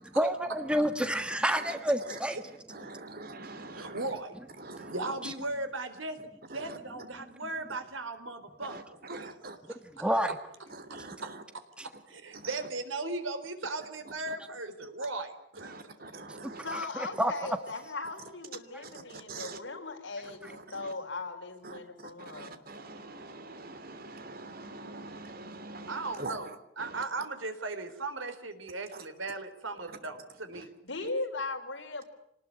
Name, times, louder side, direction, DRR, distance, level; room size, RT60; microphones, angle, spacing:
voice 1, 0.1-2.4 5.2-5.3 10.0-10.3 11.8-11.9 16.4-16.8 17.2-17.3 18.7-18.8, equal, 5° right, 1.4 m, -28 dB
voice 2, 1.6-2.2 2.7-4.1 4.6-4.9 6.6-6.8 8.7-8.8 9.1-9.5 10.9-11.4 12.4-12.5 14.3-14.4 15.6-16.6 19.1-19.6 20.4-20.9 21.6-26.4 26.8-27.0, right 3 dB, 50° right, 3.0 m, -44 dB
voice 3, 3.7-4.4 4.7-6.2 6.5-8.8 9.1-9.5 11.5-15.9 25.9-26.5 26.8-30.7 31.0-31.1, right 2 dB, 85° right, 4.2 m, -37 dB
voice 4, 16.6-22.6 30.8-32.0, left 3 dB, 65° left, 5.0 m, -38 dB
26.5 x 20.0 x 9.8 m
head